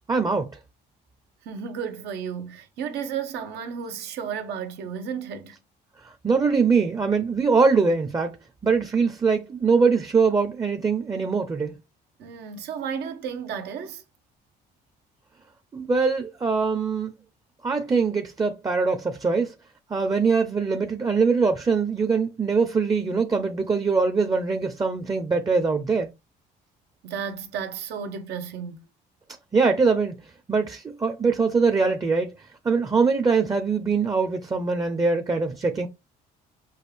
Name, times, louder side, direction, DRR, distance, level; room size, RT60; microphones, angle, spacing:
voice 1, 0.1-0.5 6.0-8.4 8.6-11.8 15.7-17.1 17.6-19.5 19.9-26.1 29.5-30.1 30.5-35.9, right 4 dB, 20° right, 0.6 m, -22 dB
voice 2, 1.5-5.6 12.2-14.0 27.0-28.8, right 7 dB, 80° right, 1.1 m, -33 dB
6.3 x 2.4 x 3.3 m
cardioid pair, 110°, 17 cm